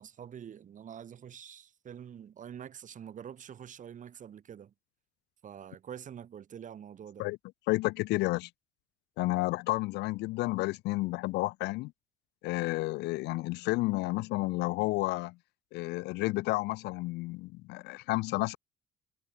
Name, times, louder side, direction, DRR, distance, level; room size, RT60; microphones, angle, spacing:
voice 1, 0.0-4.7 5.4-7.3, right 9 dB, 50° right, 7.5 m, -46 dB
voice 2, 7.7-8.5 9.2-11.9 12.4-15.4 15.7-18.6, left 21 dB, 85° left, 0.9 m, -31 dB
cardioid pair, 110°, 17 cm